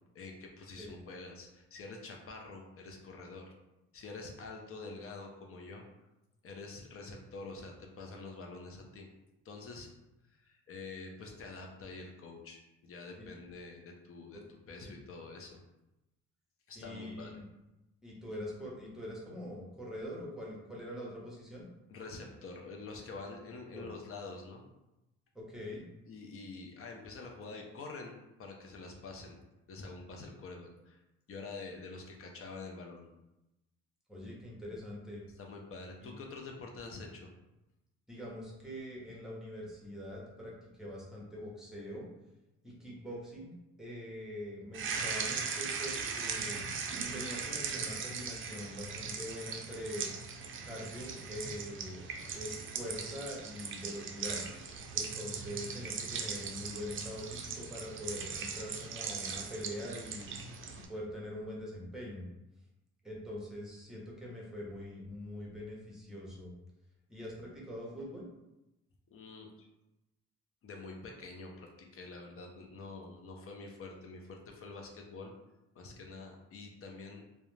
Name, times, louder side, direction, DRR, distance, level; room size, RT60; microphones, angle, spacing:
voice 1, 0.1-3.4 3.9-5.8 6.4-9.1 9.4-9.9 10.3-14.4 14.7-15.6 16.7-17.3 21.9-24.6 26.1-29.4 29.7-31.0 31.3-33.1 35.4-37.3 69.1-69.7 70.6-75.3 75.7-77.2, left 3 dB, 50° left, 1 dB, 0.6 m, -46 dB
voice 2, 14.7-15.0 16.7-17.4 18.0-21.6 23.3-23.4 23.7-23.9 25.3-25.8 34.1-35.2 36.0-36.2 38.1-42.0 42.6-46.6 47.1-50.1 50.6-54.4 54.9-60.3 60.9-62.3 63.0-66.5 67.1-68.3, equal, ahead, -4 dB, 0.9 m, -43 dB
sound 1, 44.7-60.9, right 5 dB, 45° right, 0.4 m, -39 dB
2.4 x 2.1 x 3.1 m, 0.95 s
cardioid pair, 90°, 30 cm